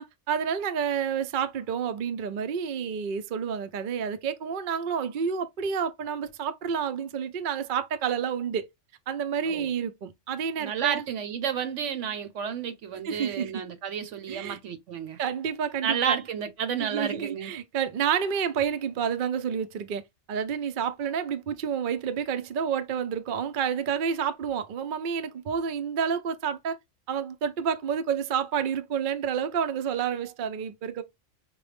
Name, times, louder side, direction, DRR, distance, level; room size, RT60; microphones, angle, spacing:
voice 1, 0.0-8.7 9.1-11.0 13.0-13.6 14.3-14.6 15.2-16.2 16.8-20.0 20.3-26.8 27.1-31.0, right 7 dB, 55° right, 0.6 m, -29 dB
voice 2, 10.6-15.2 15.8-17.5, right 8 dB, 75° right, 1.1 m, -31 dB
5.2 x 2.1 x 3.3 m
omnidirectional pair, 1.3 m